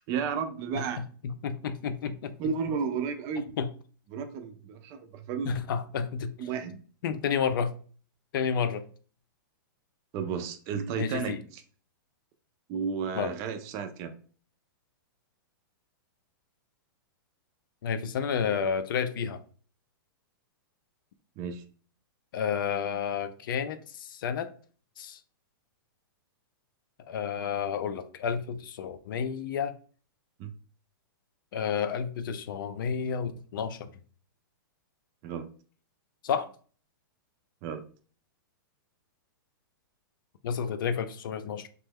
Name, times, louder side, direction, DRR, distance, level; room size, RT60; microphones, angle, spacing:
voice 1, 0.1-1.0 2.4-3.5 4.1-5.6 6.4-6.8 10.1-11.6 12.7-14.1 21.4-21.6 30.4-30.5 35.2-35.5 37.6-37.8, right 6 dB, 25° right, 0.4 m, -33 dB
voice 2, 0.7-2.4 3.6-3.7 5.4-6.4 7.0-7.7 8.3-8.9 11.0-11.4 13.2-13.3 17.8-19.4 22.3-24.5 25.0-25.2 27.1-29.8 31.5-33.9 36.2-36.5 40.4-41.7, left 7 dB, 65° left, 0.4 m, -31 dB
3.1 x 2.2 x 3.4 m
supercardioid pair, 160°, 12 cm